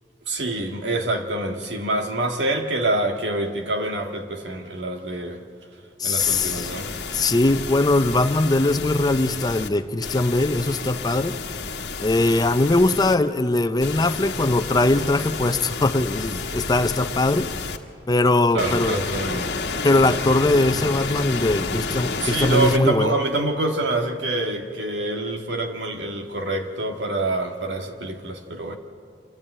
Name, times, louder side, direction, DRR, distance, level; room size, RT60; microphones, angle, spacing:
voice 1, 0.3-5.4 6.0-7.0 18.5-19.6 22.2-28.8, right 2 dB, 85° right, 1.9 m, -26 dB
voice 2, 6.0-6.7 7.1-11.4 12.0-17.5 18.1-19.0 19.8-23.1, left 2 dB, 20° left, 0.6 m, -21 dB
sound 1, 6.2-9.7 10.0-13.2 13.8-17.8 18.6-22.8, left 4 dB, 70° left, 1.3 m, -30 dB
27.0 x 12.0 x 8.9 m
head